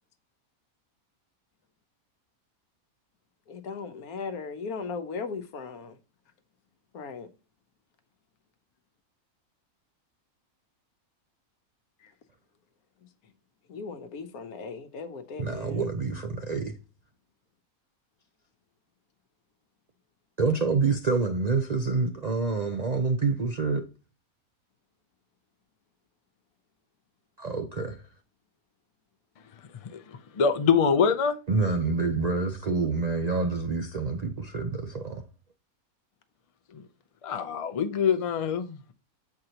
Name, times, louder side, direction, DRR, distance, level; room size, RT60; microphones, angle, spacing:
voice 1, 3.5-6.0 6.9-7.3 12.0-12.1 13.7-15.8, left 5 dB, 80° left, 1.3 m, -37 dB
voice 2, 15.4-16.7 20.4-23.9 27.4-28.0 31.5-35.3, right 4 dB, 55° right, 0.4 m, -27 dB
voice 3, 30.4-31.4 37.2-38.9, left 6 dB, 55° left, 0.3 m, -24 dB
7.7 x 4.7 x 2.8 m
omnidirectional pair, 1.5 m